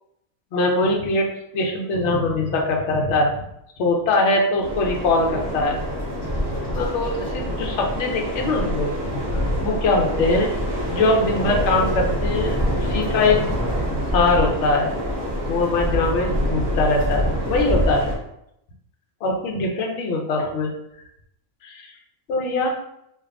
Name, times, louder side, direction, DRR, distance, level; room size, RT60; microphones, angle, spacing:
voice 1, 0.5-1.3 1.5-3.3 3.8-5.8 6.7-8.9 9.6-10.5 10.9-13.4 14.1-14.9 15.5-18.1 19.2-20.7 21.6-21.9 22.3-22.7, left 2 dB, 65° left, 1 dB, 1.0 m, -22 dB
sound 1, 4.6-18.1, equal, 20° right, 1.2 m, -25 dB
3.5 x 2.5 x 3.5 m, 0.78 s
omnidirectional pair, 1.3 m